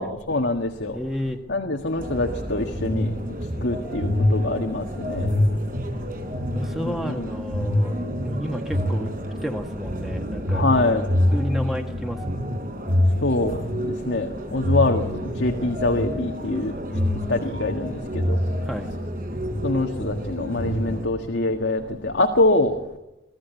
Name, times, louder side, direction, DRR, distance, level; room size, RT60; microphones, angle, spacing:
voice 1, 0.0-1.0 1.5-3.1 3.6-5.3 6.8-7.3 10.5-11.1 13.2-15.1 15.4-16.7 17.3-18.4 19.6-22.8, left 2 dB, 85° left, 4 dB, 1.8 m, -24 dB
voice 2, 0.9-1.4 6.5-7.9 8.2-9.1 9.4-10.6 11.3-12.4 16.9-17.5 18.6-18.9, equal, ahead, 3 dB, 1.6 m, -31 dB
sound 1, 2.0-21.0, left 1 dB, 50° right, 4.7 m, -26 dB
24.0 x 15.5 x 8.3 m, 0.97 s
head